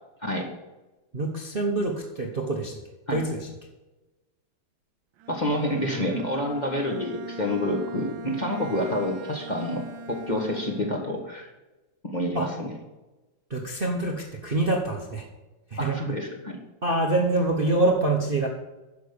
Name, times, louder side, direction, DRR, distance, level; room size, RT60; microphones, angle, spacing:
voice 1, 1.1-2.7 3.1-3.3 12.3-12.5 13.5-15.2 15.7-16.0 16.8-18.5, right 2 dB, 35° right, 0 dB, 1.1 m, -25 dB
Bowed string instrument, 5.2-11.2, right 3 dB, 70° right, 1.5 m, -41 dB
voice 2, 5.3-9.8 10.1-11.5 12.0-12.8 15.8-16.6, left 1 dB, 25° left, 1 dB, 1.5 m, -28 dB
10.5 x 6.8 x 6.8 m, 1.1 s
omnidirectional pair, 2.2 m